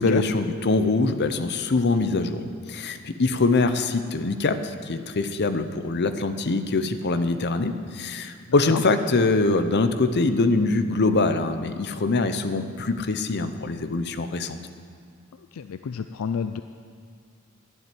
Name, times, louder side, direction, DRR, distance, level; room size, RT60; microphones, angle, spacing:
voice 1, 0.0-14.6, left 3 dB, 50° left, 9 dB, 0.7 m, -23 dB
voice 2, 15.5-16.6, left 6 dB, 75° left, 9 dB, 0.4 m, -29 dB
11.5 x 7.5 x 9.5 m, 2.2 s
head